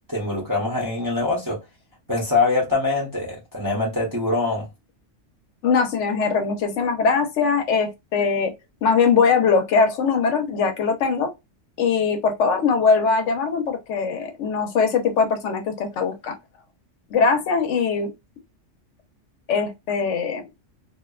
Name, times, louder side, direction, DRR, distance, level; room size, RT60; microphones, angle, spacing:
voice 1, 0.1-1.6 2.1-4.7, left 3 dB, 20° right, 0.7 m, -23 dB
voice 2, 5.6-8.5 8.8-11.3 11.8-16.3 17.1-18.1 19.5-20.4, left 5 dB, 70° left, 0.9 m, -21 dB
2.6 x 2.1 x 2.2 m
omnidirectional pair, 1.3 m